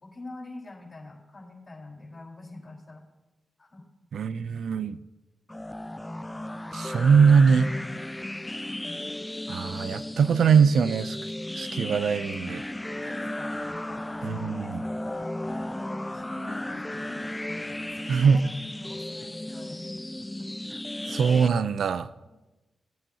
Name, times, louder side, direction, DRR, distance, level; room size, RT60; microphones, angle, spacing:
voice 1, 0.0-3.0 3.6-3.8 8.7-9.0 12.9-15.6 16.1-17.4 18.0-19.8 20.4-20.5 22.2-22.3, left 2 dB, 40° left, -2 dB, 4.2 m, -45 dB
voice 2, 4.1-5.0 6.7-7.7 9.5-11.2 11.5-12.6 14.2-14.8 18.1-18.4 21.1-22.1, right 6 dB, 75° right, 15 dB, 0.4 m, -22 dB
sound 1, 5.5-21.5, left 1 dB, 15° left, 0.4 m, -35 dB
18.0 x 9.0 x 2.8 m, 1.1 s
supercardioid pair, 45°, 0 cm